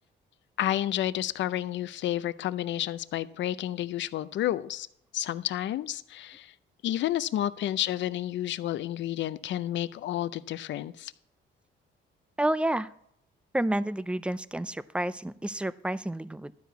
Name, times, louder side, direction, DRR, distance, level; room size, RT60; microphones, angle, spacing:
voice 1, 0.6-4.9 5.1-6.5 6.8-11.1, left 12 dB, 70° left, 16 dB, 0.5 m, -30 dB
voice 2, 12.4-12.9 13.5-16.5, right 1 dB, 5° right, 16 dB, 0.4 m, -29 dB
12.0 x 4.8 x 8.0 m, 0.73 s
cardioid pair, 90°, 20 cm